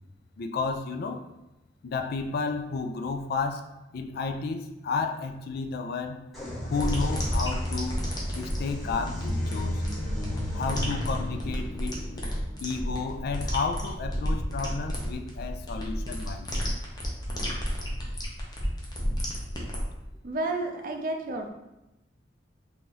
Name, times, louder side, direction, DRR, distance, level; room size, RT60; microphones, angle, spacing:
voice 1, 0.4-1.2 1.8-3.6 3.9-6.2 6.7-8.0 8.3-9.8 10.5-12.2 12.6-16.7, left 4 dB, 55° left, 7 dB, 0.3 m, -32 dB
sound 1, 6.3-13.9, left 1 dB, ahead, 1.1 m, -34 dB
sound 2, 6.8-19.9, equal, 25° left, 0.7 m, -32 dB
voice 2, 20.2-21.5, right 2 dB, 50° right, 3 dB, 0.5 m, -31 dB
2.9 x 2.6 x 3.8 m, 0.96 s
head